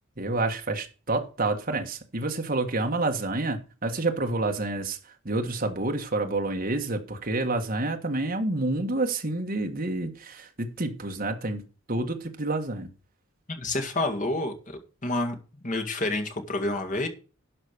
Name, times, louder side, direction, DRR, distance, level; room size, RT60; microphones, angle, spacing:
voice 1, 0.2-5.0 5.2-11.6 11.9-12.9, right 2 dB, 45° right, 1.5 m, -28 dB
voice 2, 13.5-15.4 15.6-17.1, left 2 dB, 35° left, 2.0 m, -29 dB
12.0 x 5.0 x 6.8 m
head